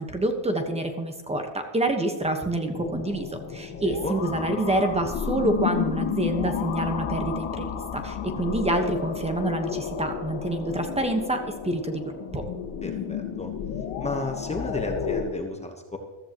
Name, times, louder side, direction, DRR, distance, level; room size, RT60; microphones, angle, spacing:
voice 1, 0.0-12.4, right 1 dB, 15° right, 5 dB, 1.3 m, -27 dB
sound 1, 2.7-15.2, left 8 dB, 65° left, 2.0 m, -32 dB
voice 2, 3.8-4.2 12.8-13.5 14.0-16.0, left 2 dB, 15° left, 4 dB, 1.2 m, -32 dB
14.5 x 14.5 x 3.1 m, 1.2 s
cardioid pair, 140°, 49 cm